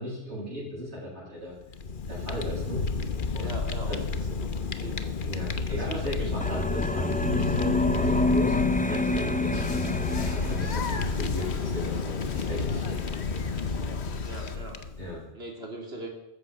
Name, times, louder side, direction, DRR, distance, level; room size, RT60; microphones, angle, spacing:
voice 1, 0.0-1.5 2.1-2.8 3.3-3.5 3.9-4.0 5.2-9.8 10.1-13.5 15.0-15.2, equal, 85° right, -10 dB, 8.3 m, -37 dB
Fire, 1.6-15.2, left 4 dB, 50° left, 1.1 m, -31 dB
voice 2, 3.4-4.0 4.4-5.0 5.7-6.3 14.2-14.8 15.3-16.1, right 1 dB, 65° right, 1 dB, 3.2 m, -40 dB
sound 1, 6.4-11.1, left 2 dB, 10° left, 0.4 m, -27 dB
sound 2, 9.5-14.6, left 5 dB, 75° left, 1.5 m, -40 dB
14.0 x 14.0 x 6.1 m, 0.90 s
omnidirectional pair, 1.1 m